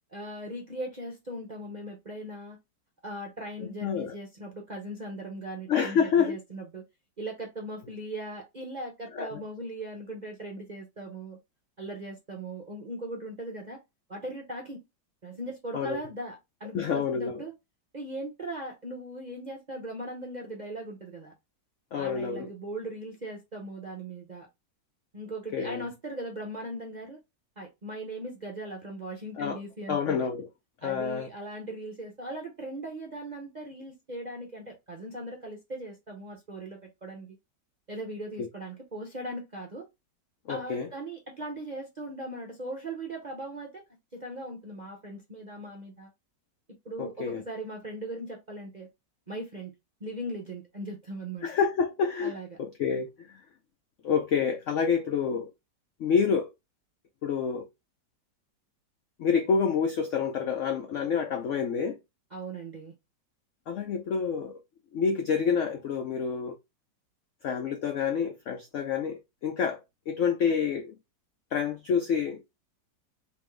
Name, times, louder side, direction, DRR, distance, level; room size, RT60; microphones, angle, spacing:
voice 1, 0.1-2.6 3.0-6.8 7.2-11.4 11.8-13.8 14.1-14.8 15.2-17.5 17.9-21.3 21.9-24.5 25.1-27.2 27.6-30.3 30.8-37.3 37.9-39.9 40.5-43.8 44.1-46.1 46.8-48.9 49.3-49.7 50.0-51.5 52.2-52.5 62.3-62.9, right 1 dB, 45° right, 0.5 m, -39 dB
voice 2, 3.6-4.1 5.7-6.4 9.1-9.4 15.7-16.0 16.7-17.4 21.9-22.5 25.5-25.8 29.4-29.6 29.9-30.5 30.8-31.3 40.5-40.9 47.0-47.4 51.4-52.3 52.6-53.3 54.0-55.5 56.0-56.5 57.2-57.7 59.2-62.0 63.7-64.6 64.9-66.6 67.4-69.8 70.1-71.0 71.5-72.4, left 6 dB, 80° left, 0.6 m, -28 dB
3.6 x 3.0 x 3.1 m
omnidirectional pair, 1.9 m